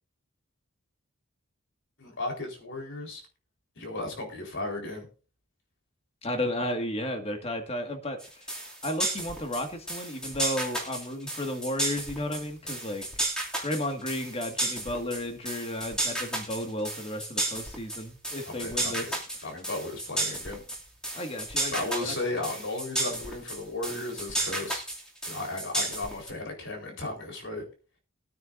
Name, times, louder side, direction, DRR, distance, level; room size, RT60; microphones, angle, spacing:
voice 1, 2.0-3.2 3.8-5.1 18.5-19.2 19.4-20.6 21.7-24.8 25.3-27.6, left 2 dB, 60° left, 2 dB, 4.0 m, -35 dB
voice 2, 6.2-8.5 8.8-13.0 13.6-19.2 21.1-22.1, left 1 dB, 30° left, 5 dB, 1.8 m, -33 dB
sound 1, 8.2-26.3, right 1 dB, 5° left, 2.5 m, -33 dB
20.5 x 9.4 x 2.6 m, 0.37 s
head